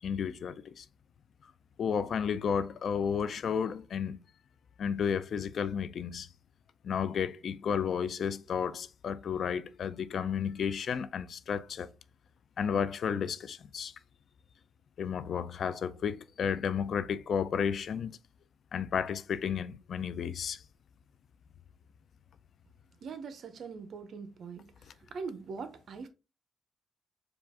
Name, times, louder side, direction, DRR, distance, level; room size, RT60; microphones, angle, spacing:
voice 1, 0.0-0.9 1.8-4.2 4.8-6.3 6.8-11.9 12.6-13.9 15.0-18.2 18.7-20.6, left 7 dB, 60° left, 0.3 m, -32 dB
voice 2, 23.0-24.7 25.1-26.1, right 5 dB, 60° right, 0.7 m, -41 dB
4.9 x 2.4 x 3.5 m
cardioid pair, 115°, 0 cm